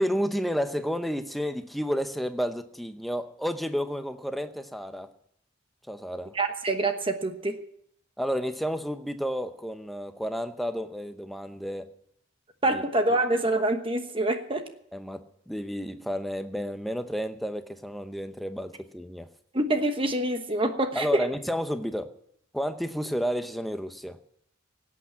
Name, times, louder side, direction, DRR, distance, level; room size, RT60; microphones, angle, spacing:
voice 1, 0.0-5.1 5.9-6.3 8.2-11.9 12.7-12.8 14.9-19.3 20.9-22.1 22.5-24.2, equal, ahead, 0.8 m, -31 dB
voice 2, 6.3-7.6 12.6-14.7 19.5-21.3, right 2 dB, 25° right, 1.1 m, -26 dB
17.5 x 8.6 x 7.4 m
head